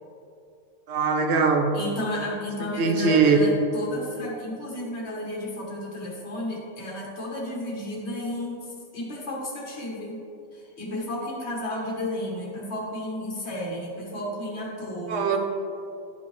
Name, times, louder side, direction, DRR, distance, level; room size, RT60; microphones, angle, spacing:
voice 1, 0.9-1.7 2.8-3.4 15.1-15.4, right 5 dB, 85° right, 3 dB, 1.0 m, -21 dB
voice 2, 1.7-10.2 10.5-15.4, left 1 dB, 80° left, -4 dB, 1.6 m, -32 dB
11.0 x 5.3 x 3.2 m, 2.6 s
omnidirectional pair, 1.1 m